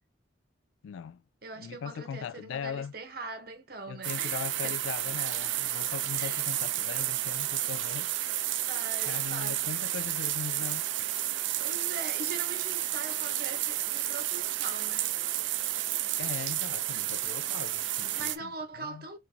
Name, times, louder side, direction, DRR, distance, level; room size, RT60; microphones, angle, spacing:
voice 1, 0.8-1.2 1.6-2.9 3.9-8.1 9.1-10.8 16.2-18.5 18.8-19.0, left 7 dB, 85° left, 0.3 m, -39 dB
voice 2, 1.4-4.8 6.1-6.5 8.7-9.8 11.6-15.1 18.1-19.2, right 3 dB, 50° right, 0.9 m, -41 dB
sound 1, 4.0-18.4, right 13 dB, 75° right, 0.4 m, -31 dB
4.3 x 2.6 x 2.7 m
head